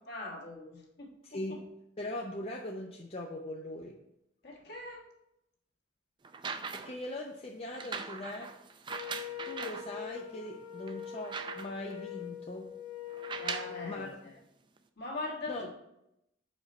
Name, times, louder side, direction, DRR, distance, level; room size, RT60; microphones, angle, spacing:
voice 1, 0.1-1.6 4.4-5.1 13.4-14.1 15.0-15.7, left 2 dB, 55° left, 0 dB, 1.5 m, -41 dB
voice 2, 1.2-1.6 2.0-4.0 6.7-8.5 9.4-12.7 13.8-14.1 15.5-15.6, left 1 dB, 30° left, 0 dB, 0.5 m, -40 dB
sound 1, 6.2-7.1 7.7-9.9 10.5-10.6 10.9-11.9 13.1-13.8 14.8-14.9, right 5 dB, 25° right, 0.4 m, -40 dB
Wind instrument woodwind instrument, 8.9-14.1, left 8 dB, 75° left, 1.1 m, -43 dB
5.5 x 5.0 x 5.2 m, 0.83 s
head